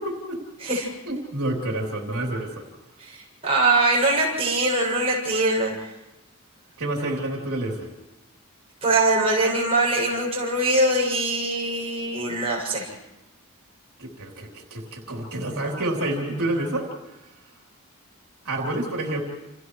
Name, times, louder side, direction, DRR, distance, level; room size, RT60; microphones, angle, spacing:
voice 1, 0.0-0.4 1.0-2.7 6.8-7.9 14.0-17.3 18.4-19.2, right 1 dB, 85° right, -1 dB, 3.5 m, -29 dB
voice 2, 3.0-5.9 8.8-12.9, right 2 dB, 25° right, -3 dB, 6.9 m, -22 dB
29.0 x 28.5 x 3.2 m, 1.0 s
head